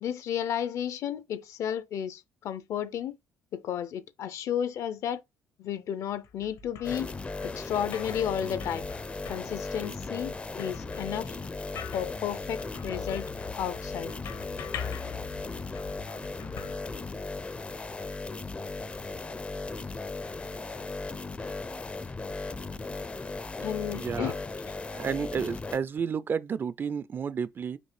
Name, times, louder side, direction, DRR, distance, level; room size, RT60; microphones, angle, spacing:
voice 1, 0.0-3.1 3.5-5.2 5.6-7.1 7.4-8.9 9.3-11.4 11.9-13.2 13.6-14.1 23.6-24.4, left 9 dB, 65° left, 0.6 m, -33 dB
sound 1, 6.1-17.6, left 7 dB, 85° left, 1.3 m, -43 dB
sound 2, 6.8-25.8, left 3 dB, 20° left, 0.4 m, -37 dB
voice 2, 23.9-24.3 24.9-27.8, right 6 dB, 40° right, 0.4 m, -31 dB
5.2 x 3.1 x 3.3 m
cardioid pair, 95°, 6 cm